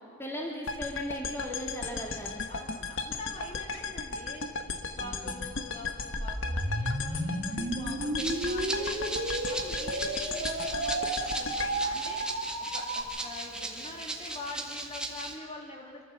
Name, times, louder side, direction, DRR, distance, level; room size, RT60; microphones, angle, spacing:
voice 1, 0.2-2.4 5.0-5.4, equal, 15° left, -1 dB, 2.5 m, -37 dB
sound 1, 0.7-12.8, left 4 dB, 70° left, 1.3 m, -36 dB
voice 2, 2.5-4.5 4.8-12.3 12.7-16.0, left 2 dB, 35° left, 0 dB, 2.8 m, -44 dB
sound 2, 6.2-13.0, right 1 dB, 55° right, 2.7 m, -33 dB
Rattle (instrument), 8.2-15.4, right 2 dB, 5° right, 1.7 m, -37 dB
27.0 x 14.0 x 7.6 m, 2.2 s
head